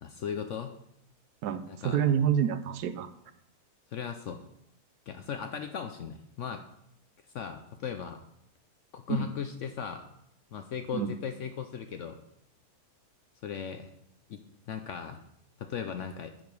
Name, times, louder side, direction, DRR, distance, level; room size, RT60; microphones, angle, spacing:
voice 1, 0.0-0.7 1.7-2.0 3.9-4.4 5.1-6.6 7.3-8.2 8.9-10.0 10.5-12.2 13.4-13.9 14.3-15.2 15.6-16.4, left 7 dB, 65° left, 7 dB, 0.7 m, -37 dB
voice 2, 1.4-3.1 9.1-9.3 10.9-11.1, right 9 dB, 75° right, 11 dB, 1.1 m, -28 dB
9.4 x 4.8 x 5.3 m, 0.77 s
omnidirectional pair, 1.7 m